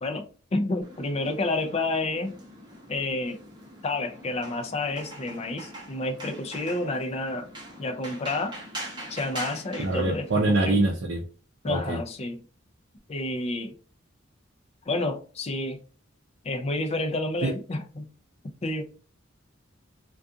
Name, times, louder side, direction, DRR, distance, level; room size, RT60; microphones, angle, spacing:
voice 1, 0.0-2.4 2.9-3.4 3.8-7.5 7.8-8.5 9.1-10.9 11.6-12.4 13.1-13.7 14.9-15.8 16.4-18.1 18.6-18.8, left 2 dB, 30° left, 0.4 m, -30 dB
sound 1, 0.8-10.9, right 1 dB, 25° right, 0.8 m, -43 dB
voice 2, 9.8-11.2 11.7-12.0 17.4-17.5, right 2 dB, 60° right, 0.5 m, -24 dB
2.4 x 2.3 x 2.6 m
head